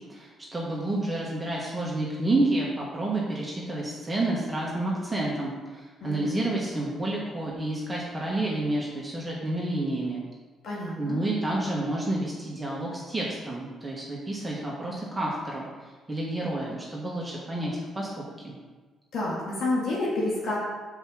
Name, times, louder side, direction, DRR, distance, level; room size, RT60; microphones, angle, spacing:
voice 1, 0.1-10.2 11.0-15.7 16.1-18.1 18.4-18.5, right 2 dB, 15° right, -5 dB, 1.4 m, -29 dB
voice 2, 6.0-6.5 10.6-11.2 19.1-20.6, left 2 dB, 75° left, -5 dB, 1.8 m, -29 dB
5.3 x 4.8 x 6.2 m, 1.3 s
cardioid pair, 90°, 0 cm